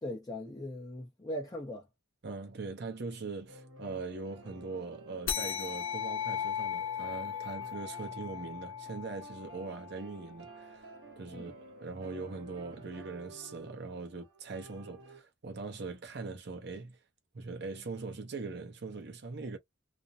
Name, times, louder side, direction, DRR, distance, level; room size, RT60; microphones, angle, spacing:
voice 1, 0.0-1.9 11.3-11.6, left 1 dB, 20° left, 0.6 m, -40 dB
voice 2, 2.2-11.5 11.8-17.0 17.3-19.6, right 3 dB, 60° right, 0.7 m, -41 dB
sound 1, 3.5-15.2, right 2 dB, 80° right, 1.1 m, -52 dB
sound 2, 5.3-10.2, left 8 dB, 85° left, 0.7 m, -37 dB
2.5 x 2.0 x 2.7 m
head